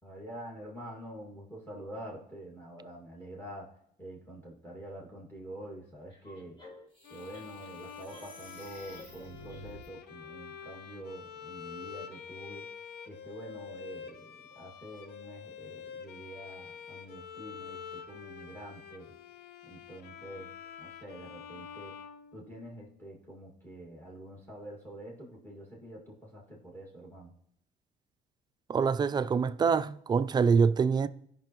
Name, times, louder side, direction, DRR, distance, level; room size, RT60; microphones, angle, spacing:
voice 1, 0.0-3.7 4.0-6.6 7.1-12.7 13.1-19.1 19.7-22.0 22.3-27.3, right 1 dB, 10° left, 2.1 m, -46 dB
sound 1, 6.1-9.9, equal, 30° left, 2.4 m, -50 dB
Bowed string instrument, 7.0-22.9, left 7 dB, 75° left, 0.7 m, -47 dB
voice 2, 28.7-31.1, right 5 dB, 25° right, 0.3 m, -25 dB
15.5 x 5.4 x 3.0 m
cardioid pair, 110°, 17 cm